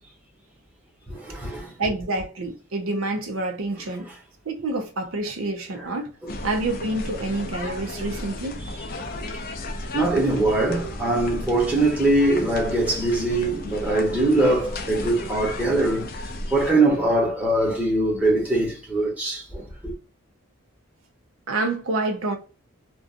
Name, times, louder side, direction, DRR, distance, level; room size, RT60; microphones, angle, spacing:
voice 1, 1.2-1.7 6.2-6.3 9.9-16.1 16.5-19.6, right 2 dB, 5° right, 0.9 m, -22 dB
voice 2, 1.8-4.1 4.4-6.1 6.4-8.9 21.5-22.4, right 2 dB, 70° right, 0.6 m, -28 dB
sound 1, 6.3-16.7, left 2 dB, 40° left, 0.4 m, -34 dB
2.5 x 2.2 x 2.5 m
head